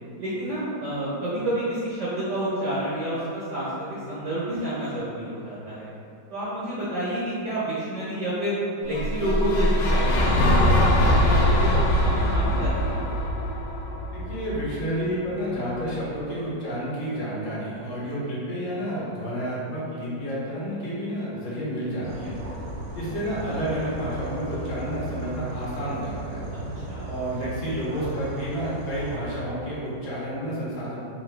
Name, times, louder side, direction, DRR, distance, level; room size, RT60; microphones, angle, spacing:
voice 1, 0.2-5.9 6.3-8.6 8.8-13.0 26.7-27.1, right 1 dB, 60° right, -9 dB, 0.8 m, -29 dB
sound 1, 8.9-15.0, left 1 dB, 85° left, 1.3 m, -22 dB
voice 2, 14.1-22.4 22.9-26.5 27.1-31.0, equal, 65° left, -8 dB, 1.6 m, -30 dB
sound 2, 22.0-29.2, right 2 dB, 85° right, 1.3 m, -36 dB
3.8 x 2.7 x 3.2 m, 2.4 s
omnidirectional pair, 1.9 m